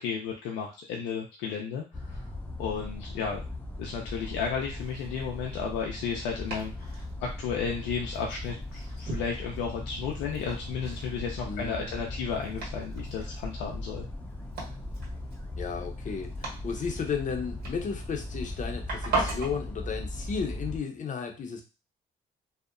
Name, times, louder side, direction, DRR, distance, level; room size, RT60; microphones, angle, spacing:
voice 1, 0.0-2.2 2.6-3.4 3.8-14.1, left 6 dB, 85° left, 0 dB, 0.4 m, -33 dB
sound 1, 1.9-20.8, left 1 dB, 10° left, 0.6 m, -38 dB
Domestic sounds home sounds, 4.1-19.6, right 3 dB, 60° right, 1.5 m, -40 dB
voice 2, 11.4-12.1 15.6-21.6, left 6 dB, 45° left, 4 dB, 0.7 m, -34 dB
2.7 x 2.0 x 2.5 m, 0.31 s
supercardioid pair, 65°, 18 cm